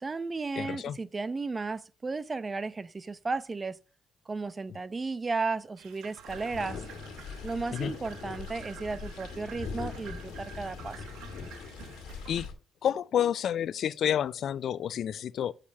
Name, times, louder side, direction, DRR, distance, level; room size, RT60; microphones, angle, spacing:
voice 1, 0.0-3.8 4.3-6.8 7.4-11.0, right 4 dB, 30° right, 0.7 m, -34 dB
voice 2, 0.6-1.0 7.7-7.9 12.3-12.5 12.8-15.5, left 9 dB, 65° left, 0.4 m, -29 dB
sound 1, 5.8-12.5, right 9 dB, 85° right, 1.4 m, -50 dB
sound 2, 6.3-12.5, left 5 dB, 85° left, 1.7 m, -41 dB
7.1 x 6.6 x 6.3 m
cardioid pair, 90°, 0 cm